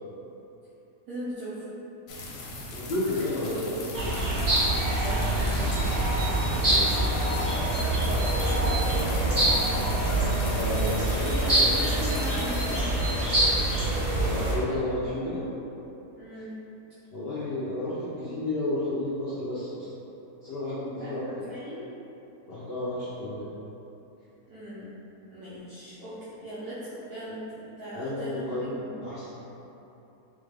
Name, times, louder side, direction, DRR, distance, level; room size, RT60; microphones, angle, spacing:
voice 1, 1.1-1.7 4.9-5.7 11.2-13.1 16.2-16.6 20.9-21.8 24.5-24.9 25.3-27.4 27.7-29.1, equal, 75° right, -13 dB, 1.3 m, -38 dB
sound 1, 2.1-12.8, left 2 dB, 80° left, 1.1 m, -40 dB
voice 2, 2.7-4.1 6.6-7.1 10.5-11.7 14.2-15.4 17.1-19.9 20.4-21.4 22.5-23.5 27.9-28.7 29.0-29.3, left 1 dB, 65° left, -10 dB, 0.6 m, -32 dB
sound 2, 3.9-14.6, right 1 dB, 25° right, 0.5 m, -25 dB
4.0 x 2.4 x 3.3 m, 2.9 s
omnidirectional pair, 1.7 m